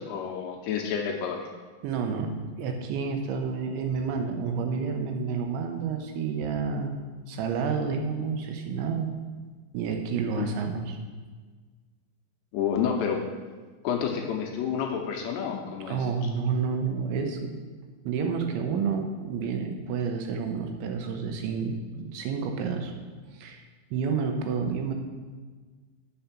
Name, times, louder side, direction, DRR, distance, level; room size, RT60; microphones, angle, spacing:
voice 1, 0.0-1.5 10.4-10.5 12.5-13.2 13.8-16.0, left 7 dB, 75° left, 1 dB, 2.7 m, -29 dB
voice 2, 1.8-7.0 7.3-9.1 9.7-11.0 15.9-17.5 18.0-22.9 23.3-23.6 23.9-24.9, right 5 dB, 80° right, 4 dB, 3.1 m, -29 dB
8.2 x 6.8 x 5.8 m, 1.4 s
omnidirectional pair, 5.5 m